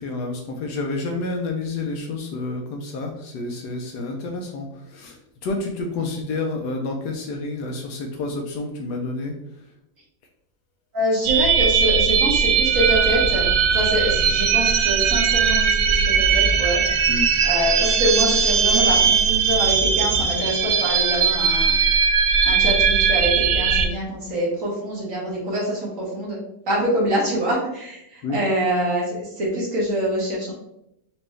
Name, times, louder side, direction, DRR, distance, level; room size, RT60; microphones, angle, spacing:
voice 1, 0.0-9.3 17.1-17.3 28.2-28.4, left 3 dB, 75° left, 2 dB, 1.1 m, -29 dB
voice 2, 10.9-16.8 17.4-21.7 22.4-26.4 26.7-30.5, equal, 50° right, -5 dB, 1.4 m, -25 dB
sound 1, 11.2-23.9, right 6 dB, 80° right, 0.7 m, -19 dB
4.4 x 2.6 x 3.1 m, 0.81 s
omnidirectional pair, 2.0 m